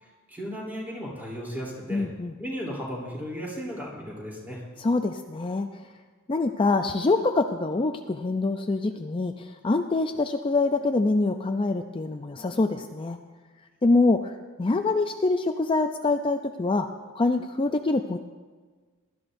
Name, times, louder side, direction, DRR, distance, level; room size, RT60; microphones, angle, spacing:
voice 1, 0.3-2.1 2.4-4.6, equal, 10° right, -4 dB, 3.3 m, -35 dB
voice 2, 1.9-2.3 4.8-5.8 6.3-13.2 13.8-14.3 14.6-16.9 17.2-18.2, left 3 dB, 25° left, 6 dB, 0.4 m, -25 dB
22.0 x 13.0 x 2.6 m, 1.4 s
head